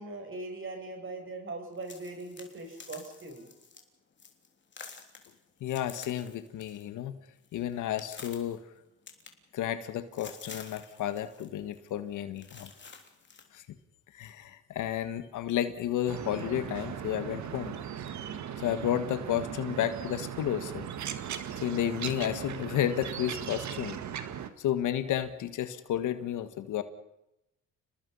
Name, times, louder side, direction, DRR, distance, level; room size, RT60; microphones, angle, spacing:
voice 1, 0.0-3.5, right 2 dB, 40° right, 3 dB, 8.0 m, -40 dB
sound 1, 1.8-3.8 4.2-4.5 4.7-6.9 7.2-8.6 9.1-9.8 10.1-11.5 11.7-11.9 12.4-13.5, left 5 dB, 40° left, 3.5 m, -49 dB
voice 2, 5.6-7.2 7.5-8.6 9.5-12.7 13.5-13.6 14.1-17.8 18.6-20.9 21.6-24.0 24.6-26.8, left 11 dB, 80° left, 11 dB, 1.8 m, -32 dB
sound 2, 16.1-24.5, right 9 dB, 70° right, 1.9 m, -38 dB
30.0 x 20.0 x 5.7 m, 0.85 s
cardioid pair, 90°, 30 cm